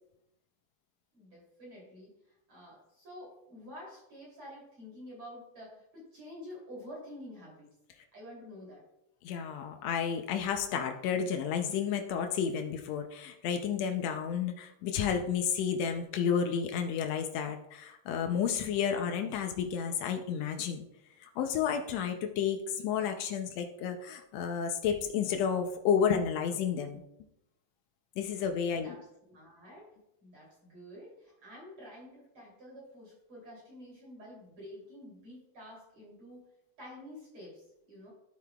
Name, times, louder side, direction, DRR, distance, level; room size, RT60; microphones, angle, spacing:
voice 1, 1.1-7.7 8.1-8.8 28.8-29.9 30.2-36.5 36.8-38.1, left 1 dB, 40° right, -4 dB, 3.7 m, -49 dB
voice 2, 9.2-20.8 21.2-27.0 28.2-28.9, left 7 dB, 90° left, 5 dB, 1.5 m, -31 dB
11.5 x 8.2 x 2.3 m, 0.83 s
omnidirectional pair, 3.9 m